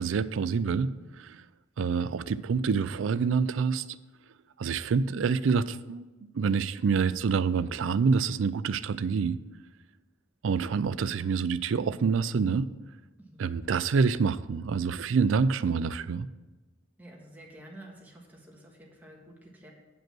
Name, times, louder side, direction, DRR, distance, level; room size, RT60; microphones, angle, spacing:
voice 1, 0.0-1.4 1.8-4.0 4.6-9.4 10.4-12.7 13.4-16.3, right 5 dB, 80° right, 15 dB, 0.4 m, -27 dB
voice 2, 13.2-13.5 17.0-19.7, right 1 dB, 10° right, -1 dB, 1.5 m, -50 dB
9.0 x 5.2 x 6.1 m, 1.2 s
head